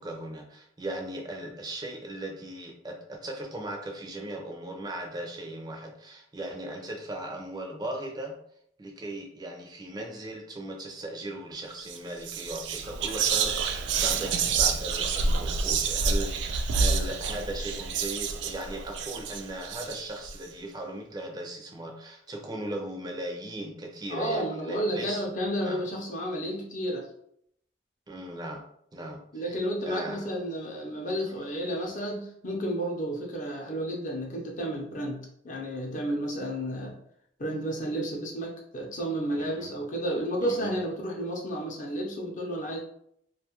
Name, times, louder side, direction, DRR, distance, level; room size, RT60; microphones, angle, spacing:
voice 1, 0.0-8.4 8.8-25.2 25.6-25.8 28.1-28.6 28.9-29.6 29.9-30.3 39.4-39.7 40.4-40.7, right 1 dB, 25° right, 2 dB, 0.4 m, -38 dB
Whispering, 11.8-12.0 12.2-20.3, right 5 dB, 85° right, 0.3 m, -28 dB
voice 2, 24.1-27.1 29.3-37.0 37.4-42.8, equal, 45° left, 0 dB, 0.6 m, -32 dB
2.5 x 2.3 x 2.9 m, 0.70 s
head